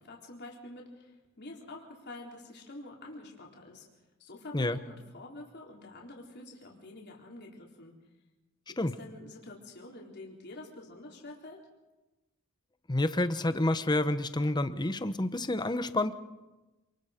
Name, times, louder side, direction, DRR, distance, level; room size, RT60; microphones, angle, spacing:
voice 1, 0.0-3.9 4.2-7.9 8.7-11.6, left 2 dB, 50° left, -1 dB, 3.9 m, -47 dB
voice 2, 12.9-16.1, left 1 dB, 20° left, 11 dB, 0.9 m, -29 dB
28.0 x 21.0 x 5.1 m, 1.1 s
head